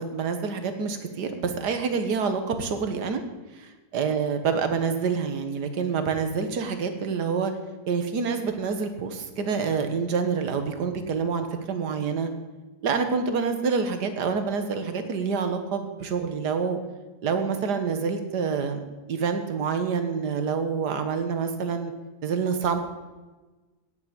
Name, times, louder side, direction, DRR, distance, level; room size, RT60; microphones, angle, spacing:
voice 1, 0.0-3.2 3.9-7.5 7.9-12.3 12.8-16.8 17.2-18.8 19.1-21.9 22.2-22.8, right 5 dB, 85° right, 8 dB, 1.8 m, -27 dB
17.0 x 8.7 x 5.1 m, 1.2 s
omnidirectional pair, 1.7 m